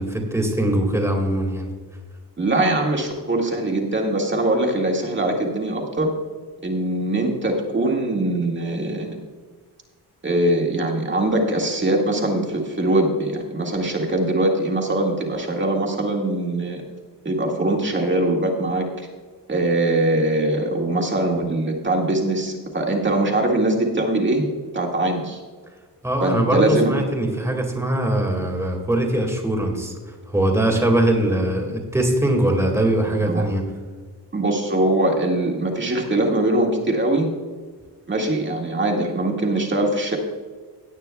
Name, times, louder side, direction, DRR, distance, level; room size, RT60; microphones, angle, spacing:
voice 1, 0.0-1.7 26.0-29.9 30.3-33.6, right 1 dB, 5° right, 1 dB, 2.0 m, -21 dB
voice 2, 2.4-6.1 6.6-9.1 10.2-16.8 17.3-18.9 19.5-24.4 24.7-25.4 26.2-26.9 33.3-33.4 34.3-37.3 38.1-40.2, right 1 dB, 30° right, 0 dB, 1.8 m, -22 dB
17.0 x 9.1 x 2.3 m, 1.5 s
wide cardioid pair, 140°, 40 cm